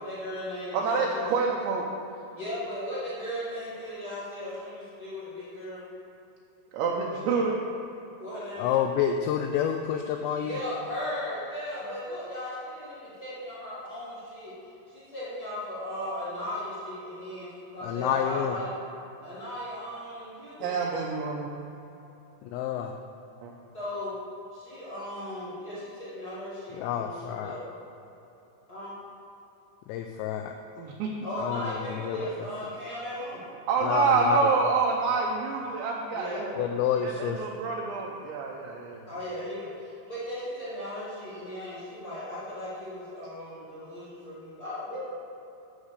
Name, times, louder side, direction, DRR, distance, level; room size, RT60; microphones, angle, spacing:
voice 1, 0.0-1.3 2.3-5.8 8.2-8.8 10.4-14.5 14.9-18.7 19.2-20.8 23.7-24.1 24.5-27.7 28.7-28.9 31.2-33.5 36.1-36.5 39.1-45.0, left 1 dB, 55° left, -11 dB, 1.0 m, -37 dB
voice 2, 0.7-1.9 6.7-7.6 20.6-21.5 23.4-23.6 30.8-31.1 33.7-36.6 37.0-39.0, right 4 dB, 80° right, -2 dB, 2.8 m, -27 dB
voice 3, 8.6-10.6 17.8-18.6 22.4-22.9 26.7-27.6 29.9-30.5 31.4-32.5 33.8-34.5 36.6-37.5, left 9 dB, 90° left, 4 dB, 2.5 m, -29 dB
9.5 x 6.5 x 6.6 m, 2.9 s
omnidirectional pair, 5.7 m